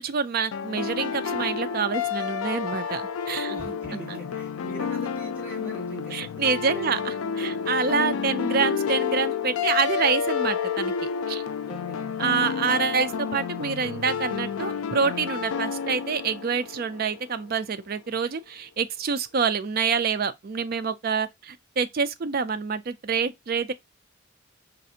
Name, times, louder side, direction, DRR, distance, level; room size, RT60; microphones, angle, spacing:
voice 1, 0.0-3.6 6.1-7.0 7.4-10.9 11.3-11.4 12.2-23.7, right 5 dB, 45° right, 0.4 m, -27 dB
sound 1, 0.5-17.4, left 7 dB, 90° left, 0.4 m, -30 dB
voice 2, 3.4-7.2 11.6-12.1, right 3 dB, 5° right, 1.6 m, -42 dB
5.1 x 2.5 x 2.7 m
head